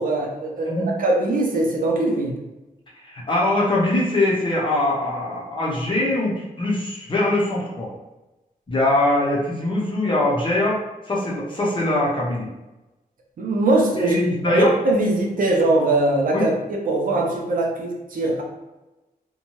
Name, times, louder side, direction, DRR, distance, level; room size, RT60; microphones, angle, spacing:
voice 1, 0.0-2.4 13.4-14.2 14.5-18.4, right 2 dB, 65° right, -1 dB, 0.6 m, -21 dB
voice 2, 3.0-7.9 8.7-10.8 11.1-12.5 14.0-14.8 16.3-16.5, left 1 dB, 35° left, -4 dB, 0.6 m, -22 dB
2.7 x 2.2 x 2.9 m, 1.0 s
wide cardioid pair, 175°, 15 cm